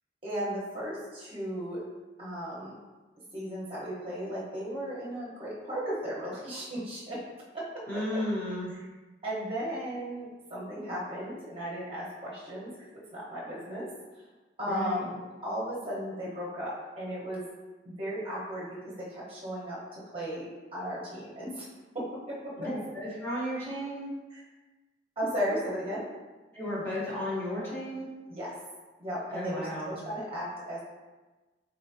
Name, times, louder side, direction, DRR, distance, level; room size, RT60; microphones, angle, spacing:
voice 1, 0.2-1.8 2.2-2.8 3.3-7.2 7.5-8.2 9.2-13.9 14.6-15.1 15.4-17.4 17.8-19.8 20.1-20.4 20.7-21.6 21.9-22.7 25.2-26.0 28.3-28.6 29.0-30.8, equal, 30° right, -7 dB, 0.9 m, -35 dB
voice 2, 7.9-8.7 14.7-15.1 22.6-24.1 26.5-28.1 29.3-30.0, equal, 15° left, -8 dB, 1.0 m, -34 dB
4.1 x 3.2 x 2.6 m, 1.2 s
head